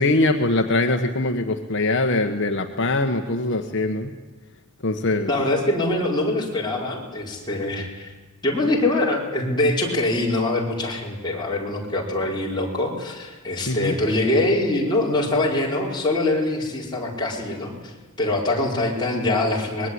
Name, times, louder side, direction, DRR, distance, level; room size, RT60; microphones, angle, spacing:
voice 1, 0.0-4.1 4.8-5.3 13.7-14.0, left 2 dB, 55° left, 5 dB, 1.4 m, -22 dB
voice 2, 5.3-8.1 8.4-17.9 18.2-19.9, left 2 dB, 20° left, -3 dB, 4.9 m, -23 dB
24.0 x 21.0 x 9.7 m, 1.2 s
head